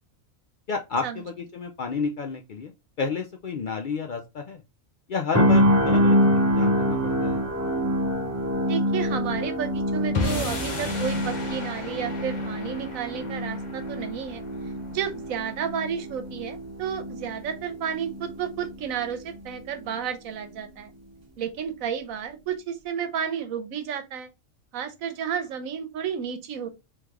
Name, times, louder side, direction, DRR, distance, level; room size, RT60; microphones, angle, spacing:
voice 1, 0.7-2.7 3.0-4.6 5.1-7.4, left 5 dB, 80° left, 0.4 m, -31 dB
sound 1, 5.3-19.3 19.7-19.9, equal, 20° right, 0.5 m, -26 dB
voice 2, 8.6-14.4 14.9-20.9 21.4-24.3 24.7-26.7, right 8 dB, 90° right, 1.1 m, -32 dB
sound 2, 10.1-16.5, left 3 dB, 40° left, 0.9 m, -35 dB
3.2 x 3.1 x 3.4 m
omnidirectional pair, 1.4 m